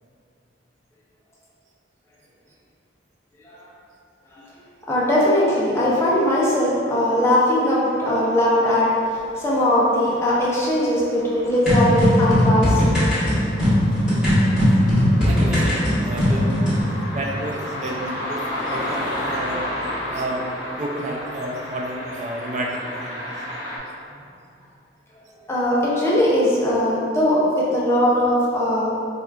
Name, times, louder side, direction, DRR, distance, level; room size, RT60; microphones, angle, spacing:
voice 1, 4.9-8.9 9.4-12.9 25.5-28.9, left 1 dB, 15° left, -6 dB, 0.5 m, -20 dB
sound 1, 9.1-23.8, left 1 dB, 75° left, 1.0 m, -33 dB
sound 2, 11.7-16.8, equal, 5° right, 1.2 m, -18 dB
voice 2, 15.2-16.5 16.9-19.7 20.1-20.4 20.8-23.1, right 1 dB, 40° right, -1 dB, 0.3 m, -31 dB
4.3 x 2.4 x 2.3 m, 2.5 s
head